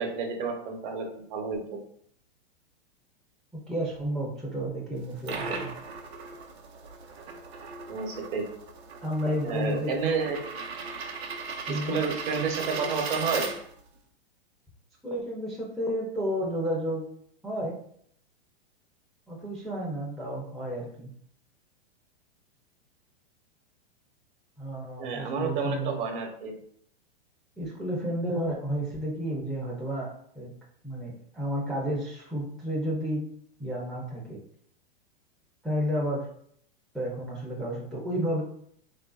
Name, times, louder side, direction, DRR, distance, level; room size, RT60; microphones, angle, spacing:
voice 1, 0.0-1.8 7.9-8.5 9.4-10.4 11.7-13.5 25.0-26.5, right 5 dB, 50° right, 3 dB, 0.8 m, -30 dB
voice 2, 3.5-5.7 9.0-9.9 11.7-12.0 15.0-17.1 17.4-17.8 19.3-21.1 24.6-26.0 27.6-30.5 30.8-33.2 33.6-34.4 35.6-36.3 36.9-38.4, equal, ahead, -5 dB, 0.4 m, -31 dB
sound 1, 5.0-14.0, right 4 dB, 90° right, 0.6 m, -38 dB
3.3 x 2.5 x 2.3 m, 0.65 s
hypercardioid pair, 120°, 31 cm